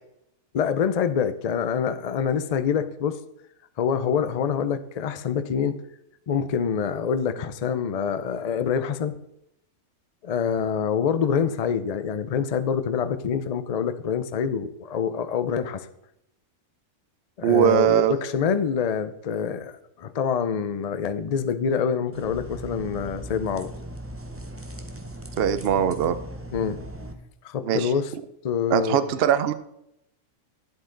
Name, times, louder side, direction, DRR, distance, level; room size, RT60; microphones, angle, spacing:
voice 1, 0.5-3.2 3.8-5.8 6.3-9.2 10.2-15.9 17.4-23.7 26.5-26.8 27.4-28.1 28.4-29.1, left 7 dB, 75° left, 11 dB, 0.3 m, -26 dB
voice 2, 17.4-18.1 25.4-26.2 27.7-27.9 28.7-29.5, right 10 dB, 60° right, 13 dB, 0.6 m, -21 dB
sound 1, 22.1-27.1, right 1 dB, 15° right, 0.6 m, -38 dB
10.5 x 8.0 x 3.9 m, 0.80 s
omnidirectional pair, 1.5 m